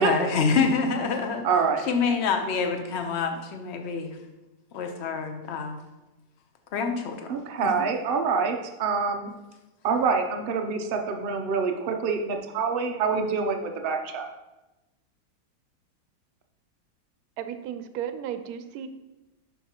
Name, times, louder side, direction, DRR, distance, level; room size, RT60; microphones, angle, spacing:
voice 1, 0.0-1.4 1.9-4.2 4.7-5.8 6.7-7.2, left 5 dB, 50° left, 5 dB, 0.9 m, -26 dB
voice 2, 1.4-1.9 7.3-9.3 9.8-14.3, right 5 dB, 85° right, 4 dB, 0.5 m, -26 dB
voice 3, 17.4-18.9, right 9 dB, 70° right, 9 dB, 1.0 m, -34 dB
10.0 x 5.6 x 2.9 m, 1.0 s
omnidirectional pair, 1.9 m